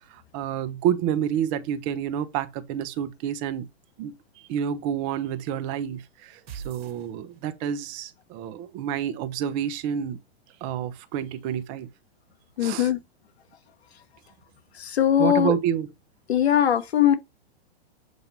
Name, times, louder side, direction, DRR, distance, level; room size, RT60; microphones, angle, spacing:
voice 1, 0.1-3.7 4.0-10.2 10.6-11.9 12.6-12.9 15.2-15.9, right 9 dB, 40° right, 1.2 m, -29 dB
sound 1, 6.5-7.7, right 7 dB, 70° right, 2.1 m, -41 dB
voice 2, 12.6-13.0 14.7-15.6 16.3-17.1, left 10 dB, 80° left, 1.5 m, -21 dB
8.0 x 2.9 x 5.3 m
hypercardioid pair, 130°, 32 cm